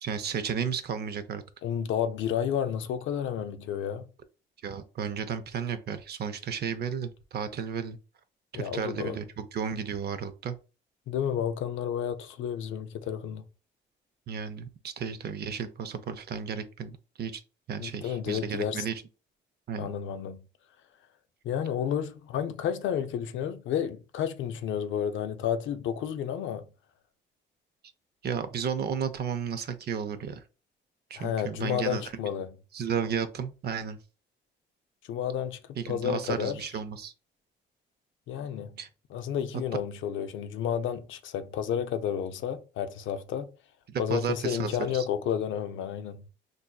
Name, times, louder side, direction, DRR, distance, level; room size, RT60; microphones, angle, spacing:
voice 1, 0.0-1.4 4.6-8.0 8.5-10.6 14.3-17.4 17.7-19.0 19.7-19.9 28.2-30.4 31.1-32.0 32.7-34.0 35.8-37.1 38.8-38.9 43.9-45.1, right 7 dB, 55° right, 0.6 m, -33 dB
voice 2, 1.6-4.1 8.5-9.2 11.1-13.4 17.8-18.8 19.8-20.4 21.4-26.7 31.1-32.5 35.1-36.7 38.3-38.8 39.1-43.5 44.0-46.2, left 9 dB, 75° left, 0.5 m, -31 dB
4.4 x 2.6 x 2.2 m
cardioid pair, 90°, 20 cm